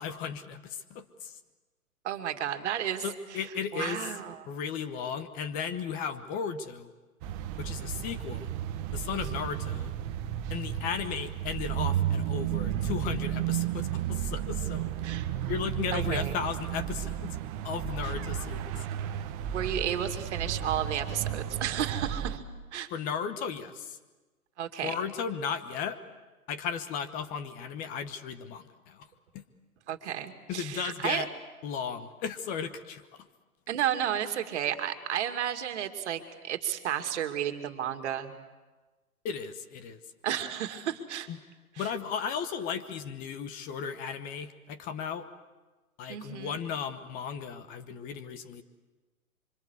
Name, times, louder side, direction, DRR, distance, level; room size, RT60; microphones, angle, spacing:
voice 1, 0.0-1.4 3.0-4.0 4.5-6.9 7.6-8.5 8.9-9.9 10.5-14.9 15.4-17.4 17.6-18.8 22.9-24.0 24.8-26.0 26.5-29.1 29.3-29.4 30.5-31.3 31.6-33.3 39.2-40.0 41.3-41.4 41.8-45.3 46.0-48.6, left 7 dB, 20° left, 11 dB, 1.1 m, -35 dB
voice 2, 2.0-3.1 3.3-3.4 3.7-4.4 9.3-9.5 15.0-15.3 15.9-16.4 18.0-18.1 19.5-22.4 22.7-22.9 24.6-25.0 29.9-31.2 33.7-38.3 40.2-41.3 41.8-41.9 46.1-46.6, right 10 dB, 50° right, 6 dB, 2.5 m, -32 dB
sound 1, 7.2-22.4, right 10 dB, 25° right, 1.1 m, -33 dB
26.0 x 25.0 x 8.2 m, 1.2 s
hypercardioid pair, 140°, 44 cm